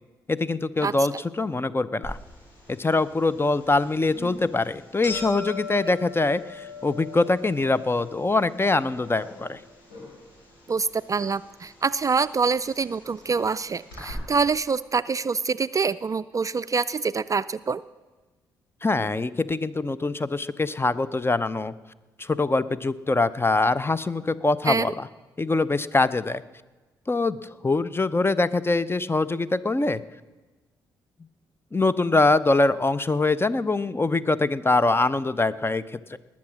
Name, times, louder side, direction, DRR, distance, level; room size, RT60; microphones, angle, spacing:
voice 1, 0.3-2.2 2.8-9.6 18.8-21.7 22.2-25.1 25.4-26.4 27.1-30.0 31.7-36.2, left 3 dB, 20° left, 17 dB, 0.7 m, -23 dB
voice 2, 0.8-1.2 10.7-17.8 24.7-24.9, right 5 dB, 30° right, 16 dB, 0.4 m, -25 dB
sound 1, 2.0-14.1, left 3 dB, 90° left, 5.7 m, -42 dB
20.0 x 7.4 x 6.2 m, 1.2 s
hypercardioid pair, 40°, 10 cm